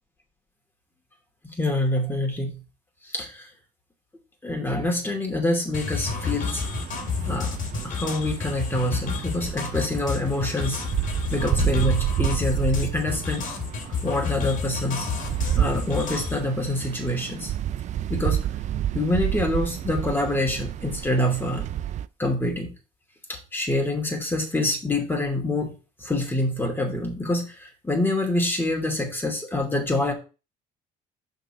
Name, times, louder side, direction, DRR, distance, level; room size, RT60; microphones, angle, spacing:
voice 1, 1.4-2.6 3.0-3.5 4.4-6.7 7.3-7.6 7.8-10.9 11.3-13.5 14.0-15.1 15.5-17.5 18.1-18.5 18.9-21.7 22.2-22.7 23.3-30.1, left 1 dB, 15° left, 1 dB, 2.7 m, -26 dB
sound 1, 5.7-16.4, left 5 dB, 55° left, 2.0 m, -30 dB
sound 2, 6.0-22.1, right 11 dB, 50° right, 0.4 m, -30 dB
5.9 x 4.2 x 6.2 m, 0.32 s
cardioid pair, 95°, 16 cm